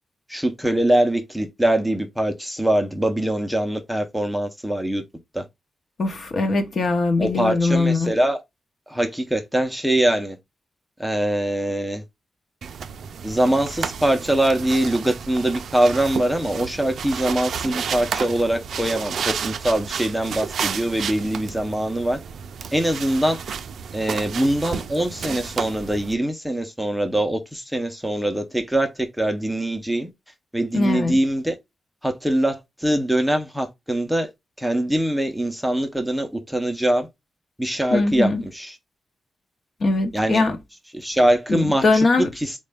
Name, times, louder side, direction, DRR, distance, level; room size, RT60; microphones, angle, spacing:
voice 1, 0.3-5.0 5.3-5.4 7.2-8.4 8.9-10.4 11.0-12.0 13.2-22.2 22.7-23.4 23.9-30.1 30.5-31.6 32.0-34.3 34.6-37.1 37.6-38.7 40.1-40.4 40.9-42.1 42.4-42.5, right 1 dB, ahead, 0.4 m, -23 dB
voice 2, 6.0-8.1 30.7-31.2 37.9-38.5 39.8-40.6 41.5-42.3, left 3 dB, 45° left, 0.7 m, -21 dB
sound 1, 12.6-26.1, right 7 dB, 75° right, 0.3 m, -31 dB
4.1 x 2.2 x 3.3 m
wide cardioid pair, 175°, 0 cm